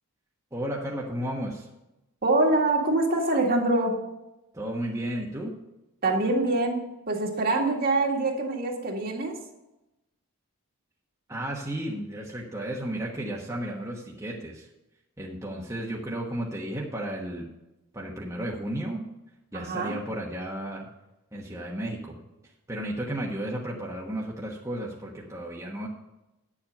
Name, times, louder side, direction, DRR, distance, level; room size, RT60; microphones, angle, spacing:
voice 1, 0.5-1.7 4.5-5.6 11.3-14.7 15.2-17.5 17.9-19.0 19.5-20.9 21.3-22.3 22.7-25.9, right 1 dB, 15° right, -4 dB, 1.2 m, -33 dB
voice 2, 2.2-4.0 6.0-9.4 19.5-20.0, right 2 dB, 45° right, 0 dB, 1.9 m, -25 dB
10.0 x 7.4 x 5.3 m, 0.95 s
head